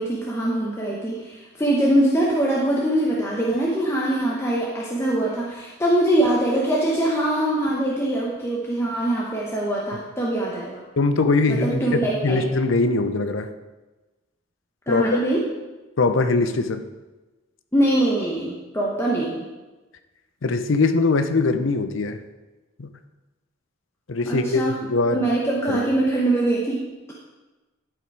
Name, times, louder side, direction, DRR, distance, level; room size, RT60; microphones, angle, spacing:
voice 1, 0.0-10.8 11.5-12.4 14.9-15.5 17.7-19.5 24.3-24.8 25.1-26.9, right 1 dB, 15° left, -4 dB, 0.9 m, -23 dB
voice 2, 11.0-13.5 14.9-15.2 16.0-16.8 20.4-22.2 22.8-22.9 24.1-25.3 25.7-25.8, left 3 dB, 65° left, 9 dB, 0.7 m, -22 dB
11.5 x 5.1 x 4.7 m, 1.2 s
head